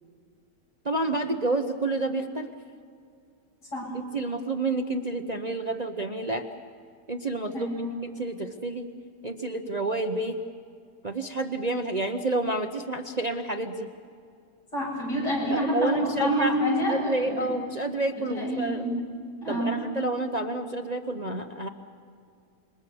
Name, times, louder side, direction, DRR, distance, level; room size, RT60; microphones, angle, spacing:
voice 1, 0.8-2.5 4.1-6.5 7.1-7.7 8.0-8.9 9.2-10.4 11.0-13.9 15.5-16.5 16.9-18.9 19.5-21.7, right 2 dB, 35° right, 5 dB, 0.8 m, -29 dB
voice 2, 7.5-7.9 14.7-17.5 18.3-18.9 19.4-19.8, equal, 90° left, -4 dB, 8.9 m, -27 dB
27.0 x 23.0 x 7.1 m, 2.3 s
omnidirectional pair, 1.8 m